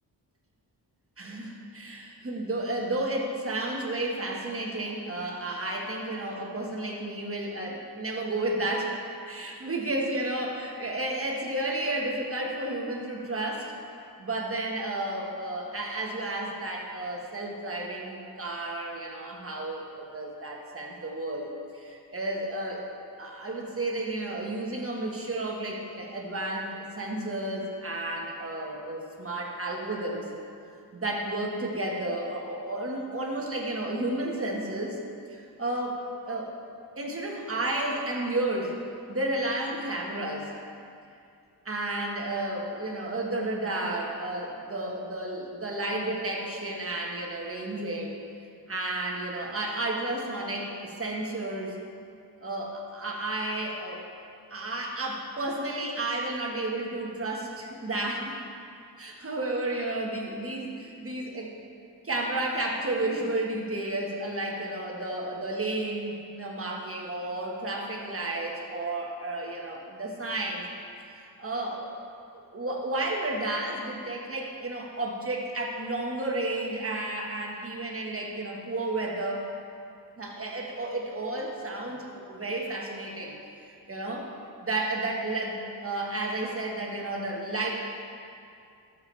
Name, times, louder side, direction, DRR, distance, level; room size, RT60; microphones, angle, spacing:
voice 1, 1.2-8.9 9.2-13.7 14.2-22.8 23.2-30.3 31.0-35.0 35.3-36.5 37.0-38.8 39.1-40.5 41.6-48.2 48.7-51.8 52.4-54.0 54.5-58.4 59.0-61.5 62.0-70.7 71.1-71.9 72.3-79.5 80.2-83.4 83.6-84.3 84.6-87.7, right 2 dB, 30° right, -1 dB, 1.5 m, -32 dB
12.5 x 7.1 x 3.3 m, 2.5 s
cardioid pair, 70°, 42 cm